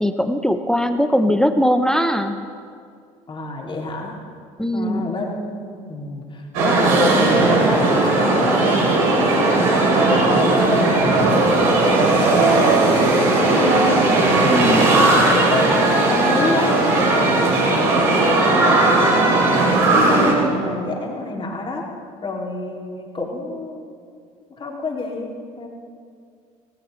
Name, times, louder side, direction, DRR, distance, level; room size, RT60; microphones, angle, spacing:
voice 1, 0.0-2.4 4.6-5.1 14.5-14.9, equal, 5° left, 8 dB, 0.8 m, -20 dB
voice 2, 3.3-4.2 4.7-8.9 9.2-11.4 11.9-14.6 15.1-19.2 19.6-21.9 22.2-24.0 24.6-25.7, left 2 dB, 30° left, -1 dB, 2.6 m, -29 dB
sound 1, 6.5-20.3, right 2 dB, 60° right, 3.3 m, -17 dB
18.5 x 14.5 x 3.2 m, 2.2 s
figure-of-eight pair, 55°, 18 cm